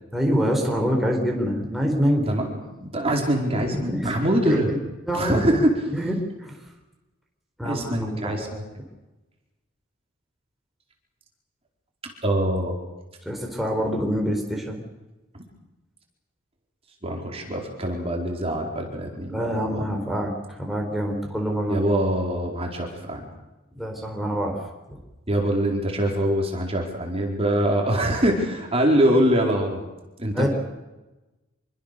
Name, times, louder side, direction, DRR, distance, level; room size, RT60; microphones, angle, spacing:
voice 1, 0.1-2.3 3.7-4.6 5.1-5.6 5.9-6.6 7.6-8.6 13.2-14.9 19.3-21.8 23.7-25.0 30.3-30.5, equal, ahead, 0 dB, 4.3 m, -26 dB
voice 2, 2.3-4.7 5.1-5.7 7.6-8.6 12.2-12.7 15.3-15.4 17.0-19.5 21.7-23.3 25.3-29.8 30.2-30.5, right 1 dB, 30° right, 1 dB, 4.5 m, -23 dB
26.5 x 23.5 x 6.8 m, 1.1 s
head